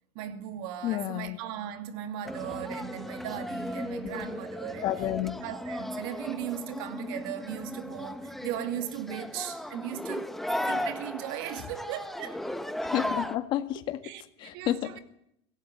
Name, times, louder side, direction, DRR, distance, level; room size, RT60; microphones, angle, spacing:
voice 1, 0.1-5.1 5.4-10.3 10.7-12.4 14.0-15.0, right 11 dB, 55° right, 2.6 m, -38 dB
voice 2, 0.8-1.4 4.0-4.3 4.8-5.4 12.9-14.0 14.4-14.9, left 13 dB, 35° left, 1.7 m, -30 dB
sound 1, 2.2-13.4, left 1 dB, ahead, 1.0 m, -36 dB
24.5 x 17.5 x 9.3 m
supercardioid pair, 180°, 14 cm